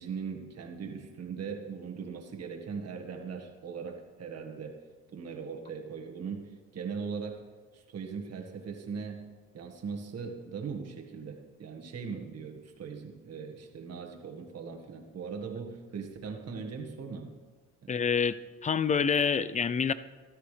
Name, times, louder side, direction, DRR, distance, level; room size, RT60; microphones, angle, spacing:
voice 1, 0.0-4.8 5.1-7.5 7.7-9.3 9.5-17.3 17.8-17.9, right 5 dB, 55° right, 2 dB, 1.8 m, -39 dB
voice 2, 17.9-18.3 18.6-19.9, left 6 dB, 25° left, 15 dB, 0.4 m, -26 dB
14.0 x 12.5 x 3.4 m, 1.4 s
cardioid pair, 90°, 30 cm